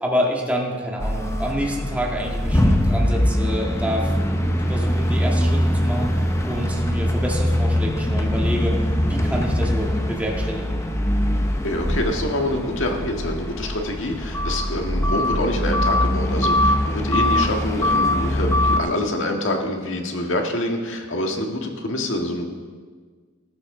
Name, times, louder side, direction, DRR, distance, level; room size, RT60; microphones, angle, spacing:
voice 1, 0.0-4.1 4.6-6.1 6.4-10.8 17.0-17.2, equal, 5° right, -2 dB, 1.8 m, -28 dB
sound 1, 1.0-18.8, left 1 dB, 15° left, 0.8 m, -22 dB
voice 2, 11.6-22.5, left 1 dB, 70° left, 3 dB, 1.8 m, -26 dB
14.0 x 14.0 x 3.8 m, 1.5 s
head